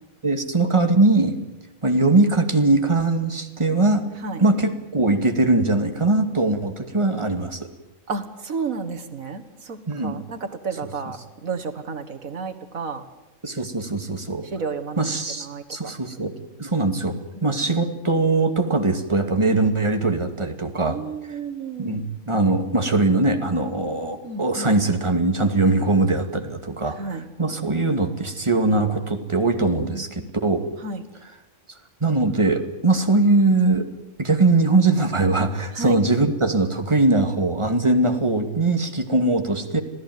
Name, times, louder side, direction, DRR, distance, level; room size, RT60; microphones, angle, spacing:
voice 1, 0.2-1.3 1.8-4.1 4.4-7.7 9.9-10.2 10.8-10.9 13.4-14.5 15.0-16.3 16.6-17.1 17.4-21.0 21.8-30.7 31.2-31.3 32.0-33.9 34.2-39.8, right 2 dB, 20° right, 6 dB, 2.4 m, -21 dB
voice 2, 8.1-13.0 14.5-15.0 15.4-15.9 17.1-17.2 20.9-22.0 24.2-24.7 27.0-27.2 29.8-30.3 30.8-31.0 35.8-36.0, right 4 dB, 80° right, 7 dB, 2.1 m, -32 dB
27.0 x 17.0 x 9.5 m, 0.96 s
omnidirectional pair, 1.4 m